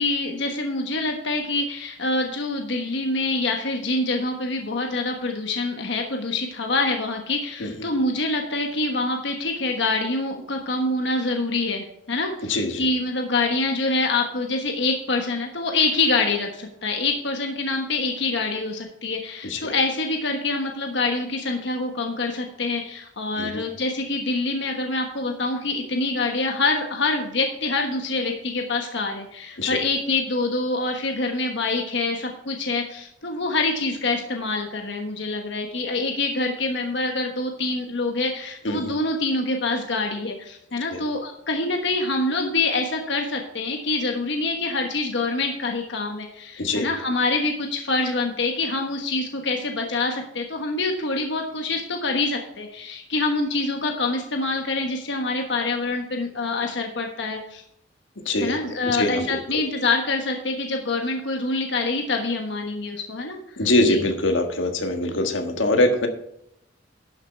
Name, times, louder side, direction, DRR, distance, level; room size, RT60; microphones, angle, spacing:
voice 1, 0.0-57.6 58.4-63.4 63.8-64.0, left 3 dB, 70° left, 3 dB, 1.3 m, -25 dB
voice 2, 12.5-12.9 19.4-19.7 23.4-23.6 29.6-29.8 38.6-38.9 40.9-41.0 46.6-46.9 58.2-58.5 58.8-59.3 63.6-66.1, left 2 dB, 85° left, 5 dB, 1.6 m, -23 dB
12.0 x 7.3 x 4.5 m, 0.76 s
head